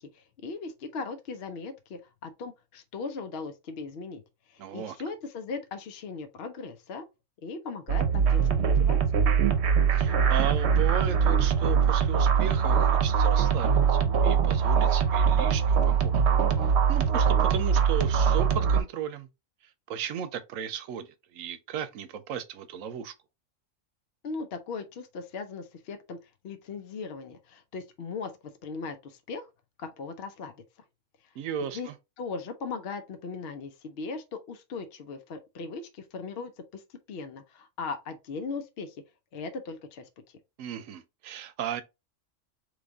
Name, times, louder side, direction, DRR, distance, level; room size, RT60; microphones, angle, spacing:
voice 1, 0.0-4.2 4.5-7.1 7.4-9.3 24.2-26.2 26.4-28.3 28.6-29.5 29.8-30.5 31.7-31.9 32.2-39.0 39.3-40.1, left 4 dB, 60° left, 0.8 m, -38 dB
voice 2, 4.6-5.0 9.9-16.1 16.6-19.3 19.9-23.1 31.4-31.9 40.6-41.8, right 8 dB, 85° right, 1.0 m, -35 dB
sound 1, 7.9-18.8, right 7 dB, 60° right, 0.9 m, -22 dB
4.0 x 3.2 x 3.5 m
omnidirectional pair, 1.3 m